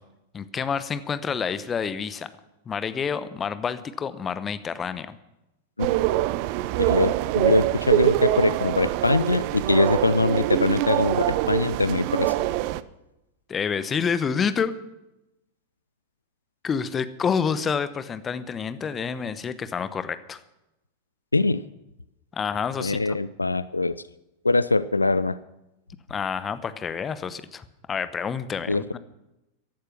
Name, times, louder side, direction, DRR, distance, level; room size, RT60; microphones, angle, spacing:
voice 1, 0.3-2.3 2.7-5.1 13.5-14.7 16.6-20.4 22.3-23.0 26.1-29.0, left 6 dB, 20° left, 14 dB, 0.9 m, -28 dB
sound 1, 5.8-12.8, right 15 dB, 45° right, 0.5 m, -24 dB
voice 2, 6.9-12.3 21.3-21.6 22.8-24.0 24.4-25.4 28.7-28.8, left 3 dB, 80° left, 17 dB, 0.4 m, -23 dB
15.0 x 11.5 x 6.0 m, 0.93 s
figure-of-eight pair, 90°, 0 cm